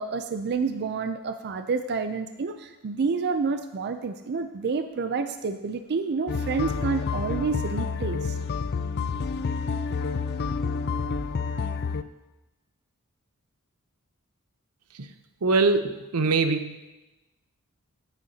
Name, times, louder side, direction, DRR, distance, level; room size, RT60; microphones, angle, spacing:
voice 1, 0.0-8.4, right 4 dB, 50° right, 8 dB, 0.4 m, -29 dB
sound 1, 6.3-12.0, left 5 dB, 50° left, 0.4 m, -29 dB
voice 2, 15.4-16.8, right 3 dB, 85° right, 9 dB, 0.7 m, -23 dB
14.5 x 8.1 x 2.8 m, 1.0 s
head